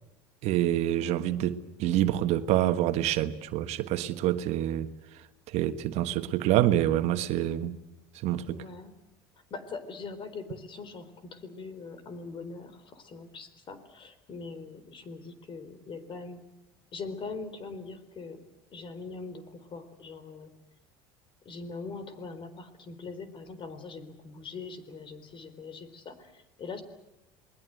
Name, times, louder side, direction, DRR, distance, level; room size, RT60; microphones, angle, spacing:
voice 1, 0.4-4.9 5.5-7.8 8.2-8.6, right 12 dB, 65° right, 1.4 m, -26 dB
voice 2, 8.5-8.9 9.5-16.4 16.9-18.4 18.7-20.5 21.4-26.8, left 4 dB, 45° left, 4.1 m, -42 dB
28.0 x 20.5 x 8.0 m
supercardioid pair, 85°, 12 cm